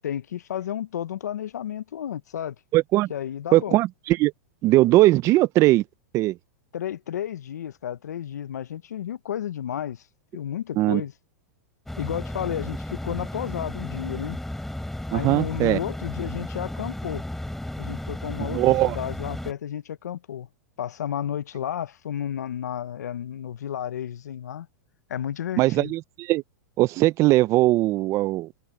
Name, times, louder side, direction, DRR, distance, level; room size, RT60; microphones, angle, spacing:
voice 1, 0.0-2.6 3.1-3.8 6.7-10.0 10.3-11.1 12.0-14.4 15.1-17.2 17.8-20.5 20.8-24.7 25.1-25.9, left 10 dB, 85° left, 0.8 m, -32 dB
voice 2, 2.7-3.1 3.5-4.3 4.6-5.8 6.1-6.4 10.8-11.0 15.1-15.8 18.4-19.0 25.6-26.4 26.8-28.5, right 17 dB, 35° right, 0.5 m, -20 dB
sound 1, 11.9-19.5, left 1 dB, 5° left, 3.0 m, -34 dB
hypercardioid pair, 130°, 9 cm